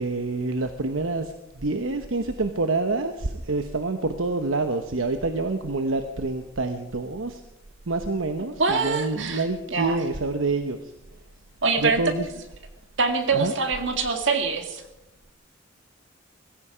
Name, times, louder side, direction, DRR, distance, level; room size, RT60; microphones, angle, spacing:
voice 1, 0.0-7.4 7.9-10.9 11.8-12.3 13.3-13.5, right 3 dB, 80° right, 8 dB, 1.0 m, -27 dB
voice 2, 8.6-9.4 9.7-10.0 11.6-12.0 13.0-14.8, right 4 dB, 65° right, 6 dB, 2.1 m, -24 dB
18.0 x 16.0 x 5.0 m, 0.91 s
head